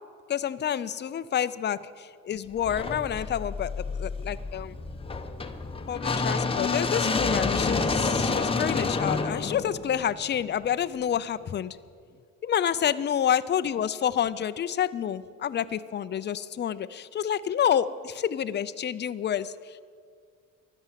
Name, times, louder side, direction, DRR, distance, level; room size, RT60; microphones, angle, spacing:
voice 1, 0.3-4.7 5.9-11.8 12.4-19.8, left 9 dB, 35° left, 13 dB, 0.5 m, -28 dB
sound 1, 2.6-10.7, left 4 dB, 15° left, 0.9 m, -29 dB
15.5 x 11.5 x 7.5 m, 2.1 s
cardioid pair, 130°, 33 cm